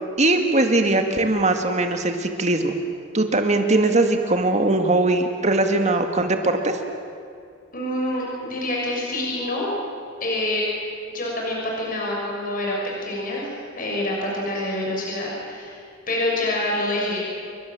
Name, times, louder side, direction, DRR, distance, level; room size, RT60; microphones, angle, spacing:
voice 1, 0.2-2.7 3.1-6.8, right 2 dB, 35° right, 5 dB, 2.1 m, -20 dB
voice 2, 7.7-9.7 10.2-10.7 11.1-12.8 13.0-13.5 13.7-15.8 16.1-17.2, left 1 dB, 45° left, -2 dB, 6.7 m, -26 dB
29.0 x 24.5 x 7.7 m, 2.4 s
head